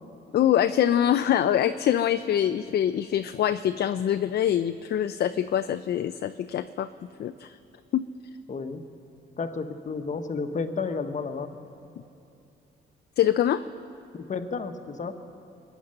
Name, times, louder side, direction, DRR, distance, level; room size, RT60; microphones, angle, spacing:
voice 1, 0.3-6.9 7.2-7.6 7.9-8.1 13.2-13.6, left 10 dB, 55° left, 11 dB, 0.5 m, -24 dB
voice 2, 8.5-8.8 9.4-11.5 14.3-15.1, left 4 dB, 40° left, 8 dB, 1.1 m, -31 dB
22.5 x 9.3 x 6.5 m, 2.8 s
cardioid pair, 90°, 20 cm